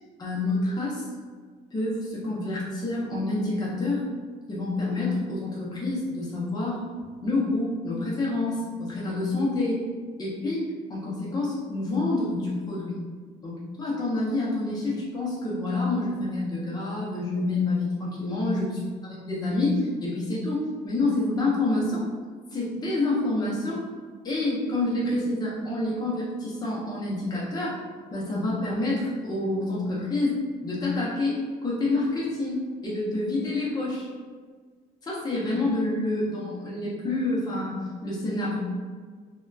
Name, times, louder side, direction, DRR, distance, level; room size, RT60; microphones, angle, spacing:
voice 1, 0.2-1.0 1.7-4.0 4.5-6.8 7.2-9.8 10.2-13.0 13.4-22.0 22.5-23.8 24.2-27.8 28.1-30.4 30.6-34.1 35.0-38.6, left 2 dB, 25° left, -6 dB, 0.7 m, -28 dB
2.7 x 2.2 x 2.3 m, 1.5 s
cardioid pair, 110°, 17 cm